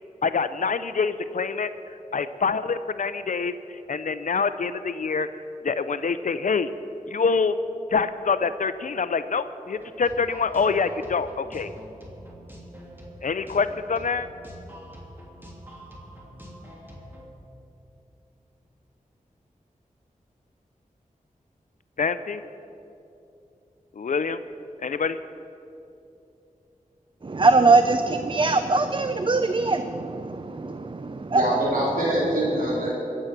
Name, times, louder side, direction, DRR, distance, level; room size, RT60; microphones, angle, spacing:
voice 1, 0.2-1.7 2.1-5.3 5.6-6.7 7.1-7.6 7.9-11.7 13.2-14.3 22.0-22.4 24.0-24.4 24.8-25.2, left 5 dB, 70° left, 12 dB, 0.5 m, -25 dB
sound 1, 9.7-17.3, equal, 15° right, 2.9 m, -45 dB
voice 2, 27.2-31.6, right 3 dB, 35° right, 9 dB, 0.5 m, -22 dB
voice 3, 31.3-32.9, right 1 dB, 85° right, -6 dB, 3.9 m, -24 dB
22.5 x 7.9 x 5.9 m, 2.8 s
wide cardioid pair, 65°, 14 cm